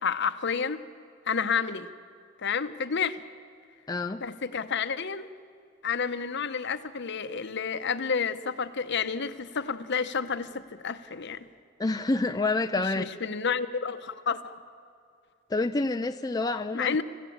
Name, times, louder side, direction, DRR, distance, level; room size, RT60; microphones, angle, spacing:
voice 1, 0.0-0.8 1.3-1.9 2.4-3.2 4.2-5.3 5.8-11.5 13.0-14.6 16.7-17.0, left 6 dB, 55° left, 11 dB, 0.9 m, -30 dB
voice 2, 3.9-4.2 11.8-13.1 15.5-17.0, left 2 dB, 20° left, 7 dB, 0.4 m, -28 dB
27.0 x 15.0 x 8.7 m, 2.3 s
head